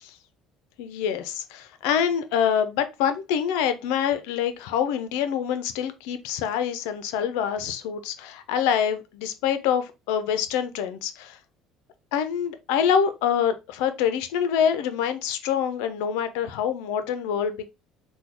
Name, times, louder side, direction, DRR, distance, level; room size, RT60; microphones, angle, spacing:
voice 1, 0.8-11.4 12.1-17.7, left 8 dB, 85° left, 0.5 m, -25 dB
3.6 x 2.2 x 2.9 m
supercardioid pair, 90°, 0 cm